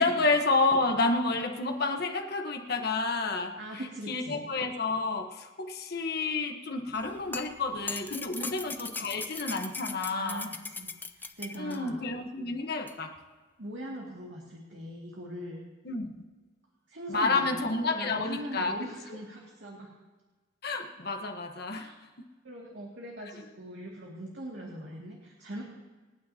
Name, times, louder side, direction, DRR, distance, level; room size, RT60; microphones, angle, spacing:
voice 1, 0.0-3.6 4.1-10.5 11.6-13.2 15.8-16.1 17.1-18.7 20.6-21.9, left 3 dB, 60° left, 4 dB, 1.2 m, -29 dB
voice 2, 3.6-4.5 8.4-8.5 10.1-12.0 13.6-15.6 16.9-19.9 21.7-21.9 22.4-25.6, right 1 dB, 80° right, -3 dB, 2.3 m, -41 dB
sound 1, 6.9-11.8 12.9-13.0, left 3 dB, 10° left, 0.5 m, -39 dB
27.5 x 9.4 x 2.8 m, 1.3 s
head